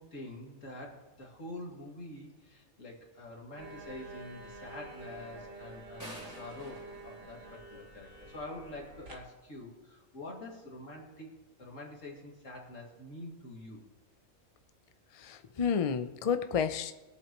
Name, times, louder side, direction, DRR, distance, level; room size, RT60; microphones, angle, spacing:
voice 1, 0.0-13.8, left 2 dB, 75° left, -1 dB, 2.7 m, -46 dB
sound 1, 3.6-9.1, right 2 dB, 80° right, 2.3 m, -49 dB
sound 2, 6.0-8.1, equal, 15° right, 3.1 m, -49 dB
voice 2, 15.2-16.9, left 7 dB, 45° left, 9 dB, 0.5 m, -30 dB
21.0 x 8.4 x 3.0 m, 1.2 s
omnidirectional pair, 1.4 m